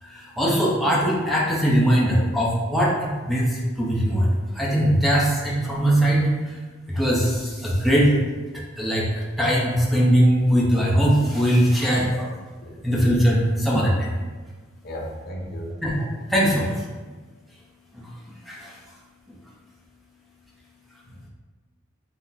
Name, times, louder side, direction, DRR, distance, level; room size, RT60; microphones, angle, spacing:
voice 1, 0.0-6.6 6.9-8.2 8.5-12.3 12.8-14.1 15.8-16.9 17.9-18.1 18.5-18.8, equal, ahead, -6 dB, 0.7 m, -21 dB
voice 2, 14.8-15.7 21.0-21.3, equal, 50° left, -2 dB, 0.8 m, -35 dB
6.0 x 2.1 x 4.1 m, 1.3 s
head